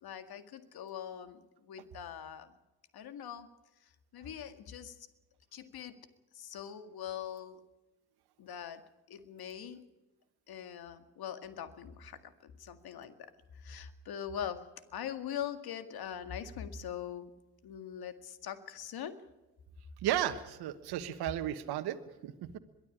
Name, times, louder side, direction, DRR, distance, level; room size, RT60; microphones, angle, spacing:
voice 1, 0.0-2.6 2.9-3.5 3.8-5.1 5.5-6.0 6.3-7.6 8.4-9.8 10.5-17.3 17.6-19.2, left 9 dB, 65° left, 10 dB, 2.0 m, -42 dB
voice 2, 20.0-22.0 22.2-22.6, right 12 dB, 70° right, 8 dB, 1.4 m, -34 dB
22.5 x 13.0 x 9.9 m, 1.1 s
hypercardioid pair, 50°, 40 cm